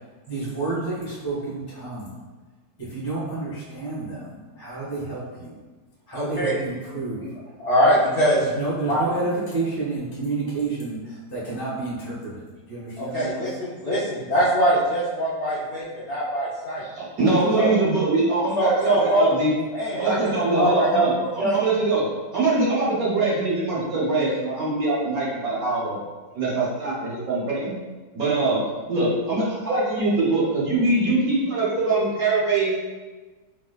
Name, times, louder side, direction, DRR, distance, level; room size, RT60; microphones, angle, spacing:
voice 1, 0.3-2.1 2.8-5.6 6.1-7.2 8.4-13.4, right 3 dB, 20° left, -8 dB, 0.5 m, -30 dB
voice 2, 6.1-6.6 7.6-8.4 8.9-9.0 13.0-16.8 17.5-17.7 18.5-19.3 19.7-21.7, right 1 dB, 80° left, -10 dB, 0.5 m, -22 dB
voice 3, 16.9-19.5 20.0-22.0 22.3-26.0 26.3-27.8 28.1-28.6 28.9-32.8, right 2 dB, 65° right, -6 dB, 1.0 m, -23 dB
4.6 x 2.3 x 2.2 m, 1.3 s
omnidirectional pair, 2.0 m